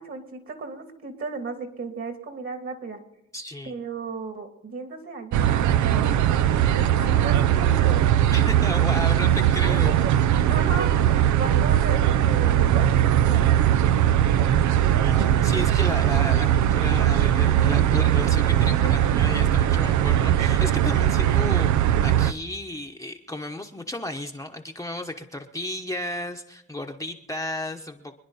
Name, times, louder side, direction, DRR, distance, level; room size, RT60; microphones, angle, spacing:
voice 1, 0.0-3.0 3.6-6.2 6.7-8.0 10.5-13.4, right 4 dB, 45° right, 5 dB, 2.8 m, -35 dB
voice 2, 3.3-3.7 8.3-10.0 14.9-28.2, left 1 dB, 10° left, 3 dB, 1.0 m, -34 dB
sound 1, 5.3-22.3, right 11 dB, 70° right, 0.6 m, -20 dB
25.5 x 10.5 x 4.2 m, 0.83 s
cardioid pair, 90°, 30 cm